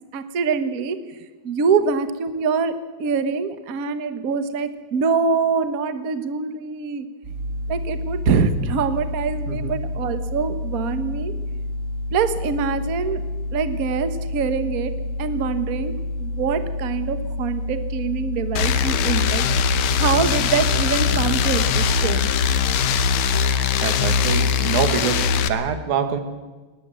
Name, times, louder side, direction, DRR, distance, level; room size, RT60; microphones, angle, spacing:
voice 1, 0.1-1.2 1.4-7.1 7.7-11.3 12.1-13.2 13.5-14.9 15.2-15.9 16.2-19.4 19.9-22.3, right 5 dB, 50° right, 10 dB, 1.1 m, -24 dB
sound 1, 7.2-23.1, left 1 dB, 30° right, 6.4 m, -29 dB
voice 2, 9.5-9.8 23.8-26.2, right 7 dB, 90° right, 9 dB, 3.1 m, -25 dB
sound 2, 18.6-25.5, left 7 dB, 70° left, 2.2 m, -21 dB
20.5 x 19.0 x 7.6 m, 1.3 s
omnidirectional pair, 3.3 m